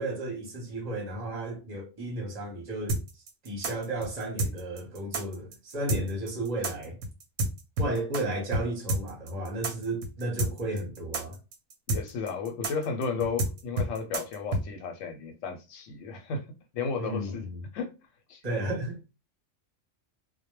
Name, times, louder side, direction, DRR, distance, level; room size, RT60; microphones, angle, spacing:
voice 1, 0.0-3.0 3.4-7.0 7.8-11.4 17.0-17.6 18.4-19.0, right 1 dB, 40° right, 0.8 m, -33 dB
sound 1, 2.9-8.2 8.5-8.6 8.9-14.6, right 1 dB, 65° right, 0.8 m, -29 dB
voice 2, 11.9-16.5 16.7-17.4 17.7-18.0 18.3-18.4, left 5 dB, 85° left, 0.9 m, -33 dB
2.2 x 2.1 x 3.0 m
omnidirectional pair, 1.3 m